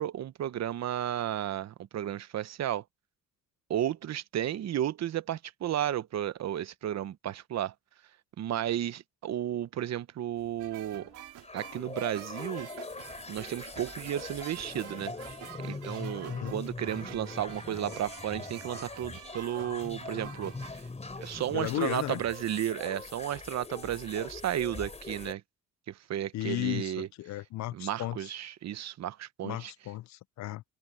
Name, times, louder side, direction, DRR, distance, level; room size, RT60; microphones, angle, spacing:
voice 1, 0.0-2.8 3.7-7.7 8.4-11.1 11.5-12.7 13.3-15.1 15.6-20.8 21.2-25.4 25.9-27.1 27.7-29.7, right 11 dB, 60° right, 1.0 m, -33 dB
sound 1, 10.4-25.3, left 3 dB, 20° left, 3.9 m, -42 dB
sound 2, 10.6-20.7, right 13 dB, 85° right, 3.1 m, -48 dB
voice 2, 16.2-16.6 21.5-22.2 26.3-28.3 29.4-30.6, left 15 dB, 65° left, 0.5 m, -35 dB
cardioid pair, 90°, 30 cm